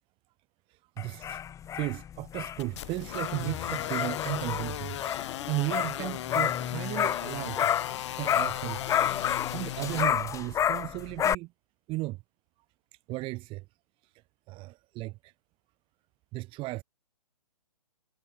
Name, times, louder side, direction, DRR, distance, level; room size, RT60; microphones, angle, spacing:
voice 1, 0.7-1.4 1.7-5.0 5.5-9.0 9.5-11.5 11.9-12.2 13.1-13.6 14.0-14.1 14.5-15.3 16.3-16.8, right 20 dB, 25° right, 5.2 m, -35 dB
sound 1, 1.0-11.4, left 9 dB, 15° left, 3.0 m, -30 dB
sound 2, 2.6-10.0, left 13 dB, 45° left, 2.6 m, -37 dB
figure-of-eight pair, 135°, 21 cm